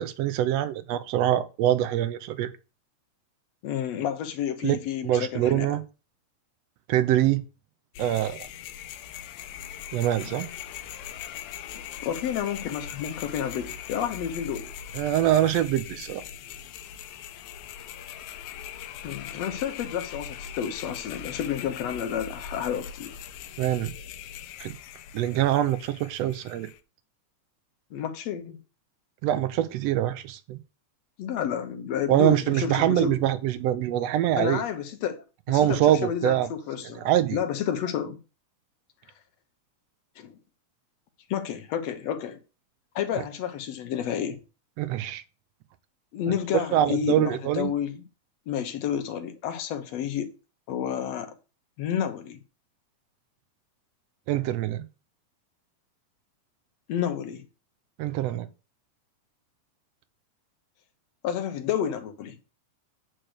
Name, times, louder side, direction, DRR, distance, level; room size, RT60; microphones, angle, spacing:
voice 1, 0.0-2.5 4.6-4.8 5.0-5.8 6.9-7.4 8.0-8.5 9.9-10.5 14.9-16.2 23.6-23.9 24.6-24.8 25.1-26.7 29.2-30.6 32.1-34.6 35.5-36.5 37.0-37.4 44.8-45.2 46.7-47.7 54.3-54.9 58.0-58.5, right 12 dB, 70° right, 1.6 m, -24 dB
voice 2, 3.6-5.8 10.3-10.4 12.0-14.7 19.0-23.1 27.9-28.6 31.2-33.2 34.4-38.2 40.2-40.4 41.3-42.4 43.0-44.4 46.1-48.0 48.5-50.3 50.7-51.3 51.8-52.4 56.9-57.4 61.2-62.4, left 9 dB, 65° left, 2.0 m, -30 dB
sound 1, 7.9-26.8, left 9 dB, 85° left, 2.0 m, -41 dB
8.9 x 3.3 x 6.5 m
omnidirectional pair, 3.5 m